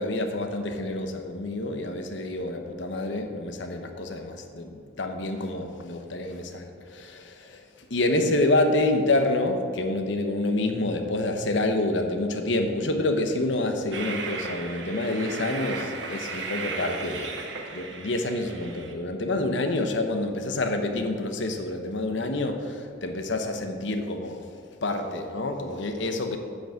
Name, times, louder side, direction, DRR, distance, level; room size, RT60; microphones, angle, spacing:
voice 1, 0.0-7.6 7.9-17.3 17.7-24.4 24.8-26.4, left 2 dB, 70° left, 5 dB, 1.0 m, -27 dB
Train, 13.9-18.9, right 4 dB, 70° right, 1.1 m, -35 dB
8.6 x 5.4 x 7.6 m, 2.2 s
head